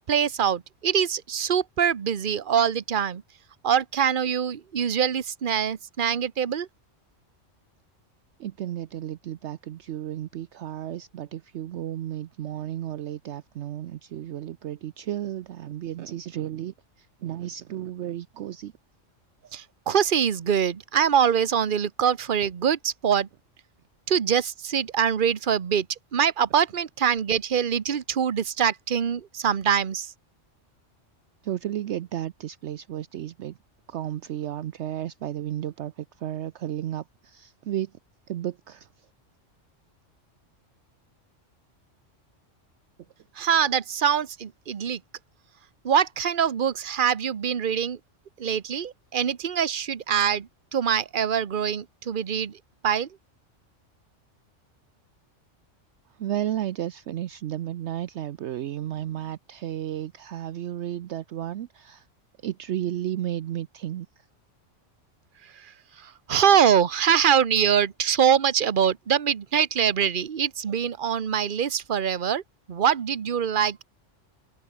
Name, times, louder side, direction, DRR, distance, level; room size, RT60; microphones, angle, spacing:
voice 1, 0.1-3.2 3.6-6.7 19.5-23.3 24.1-30.1 43.3-45.0 45.8-48.0 48.4-53.1 65.4-72.4 72.7-73.8, right 8 dB, 45° right, 1.1 m, -24 dB
voice 2, 8.4-18.7 31.4-33.6 33.9-37.9 38.3-38.9 56.2-62.0 62.4-64.1, right 12 dB, 70° right, 0.9 m, -33 dB
omnidirectional pair, 1.3 m